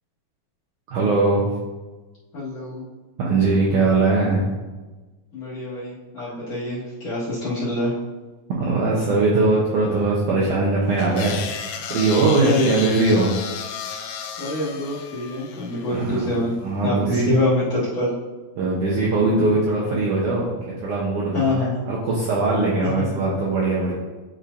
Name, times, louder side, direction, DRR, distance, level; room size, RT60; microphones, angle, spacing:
voice 1, 0.9-1.5 3.2-4.4 8.6-11.4 11.9-13.4 15.9-17.3 18.6-21.6 21.9-23.9, right 3 dB, 75° right, -5 dB, 1.9 m, -21 dB
voice 2, 2.3-2.8 5.3-7.9 12.4-12.8 14.4-16.5 16.8-18.2 21.3-21.8 22.8-23.0, left 1 dB, 50° left, -9 dB, 2.2 m, -25 dB
sound 1, 11.0-16.3, left 7 dB, 80° left, 2.2 m, -33 dB
10.0 x 4.4 x 2.6 m, 1.2 s
omnidirectional pair, 4.5 m